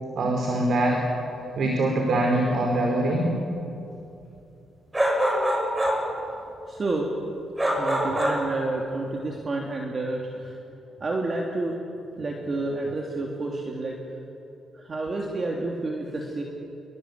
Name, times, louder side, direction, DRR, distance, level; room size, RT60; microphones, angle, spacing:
voice 1, 0.1-1.0 1.6-3.3, right 1 dB, 60° right, 1 dB, 4.6 m, -23 dB
sound 1, 4.9-6.1 7.6-8.5, equal, 15° right, 7.2 m, -24 dB
voice 2, 6.7-7.1 7.7-10.6 11.0-11.8 12.2-13.9 14.7-16.4, right 2 dB, 40° right, 0 dB, 3.3 m, -29 dB
27.0 x 24.5 x 8.6 m, 2.8 s
cardioid pair, 95°, 0 cm